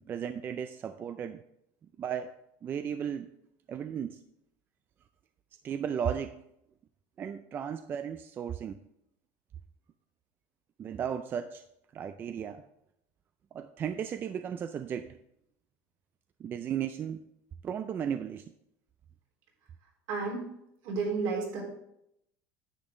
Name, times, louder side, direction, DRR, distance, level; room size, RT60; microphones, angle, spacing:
voice 1, 0.0-1.4 2.0-2.3 2.6-3.3 3.7-4.2 5.6-6.4 7.2-8.8 10.8-11.6 11.9-12.6 13.5-15.2 16.4-17.3 17.6-18.4, right 8 dB, 30° right, 9 dB, 0.4 m, -35 dB
voice 2, 20.1-20.4 20.8-21.6, right 4 dB, 70° right, -2 dB, 3.8 m, -31 dB
10.0 x 7.9 x 3.7 m, 0.79 s
cardioid pair, 150°, 7 cm